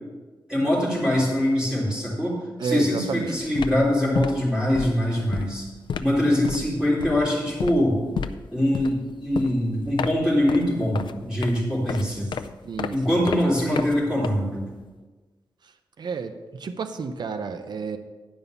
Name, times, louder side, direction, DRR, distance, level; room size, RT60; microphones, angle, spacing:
voice 1, 0.5-2.3 2.6-5.6 6.0-8.0 8.5-12.3 12.9-14.7, left 1 dB, 10° right, -6 dB, 3.6 m, -23 dB
voice 2, 2.6-3.4 12.6-13.3 16.0-18.0, right 5 dB, 55° right, 8 dB, 0.7 m, -31 dB
sound 1, 3.0-3.2 3.4-14.9, left 6 dB, 65° left, 0.4 m, -33 dB
11.0 x 5.4 x 7.0 m, 1.3 s
wide cardioid pair, 160°, 9 cm